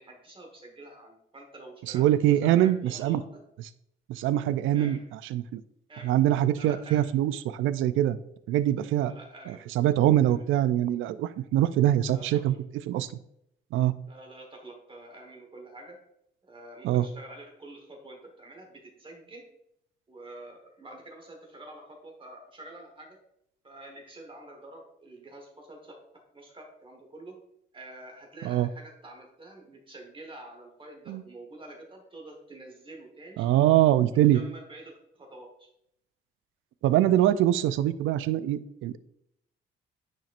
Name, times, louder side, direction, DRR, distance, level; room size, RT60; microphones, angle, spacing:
voice 1, 0.0-3.4 4.7-5.1 5.9-6.2 6.5-7.2 9.0-9.7 10.2-10.5 12.1-12.6 14.1-16.0 16.4-19.5 20.1-23.2 23.6-26.0 26.3-27.4 27.7-33.5 34.1-35.7, right 1 dB, 25° right, 1 dB, 1.4 m, -47 dB
voice 2, 1.9-3.2 4.1-5.0 5.3-5.6 6.0-8.2 8.5-9.1 9.8-12.5 12.9-13.1 13.7-13.9 16.8-17.1 28.4-28.7 31.1-31.2 33.4-34.4 36.8-39.0, right 12 dB, 80° right, 15 dB, 0.4 m, -23 dB
9.0 x 4.3 x 2.5 m, 0.77 s
cardioid pair, 90°, 20 cm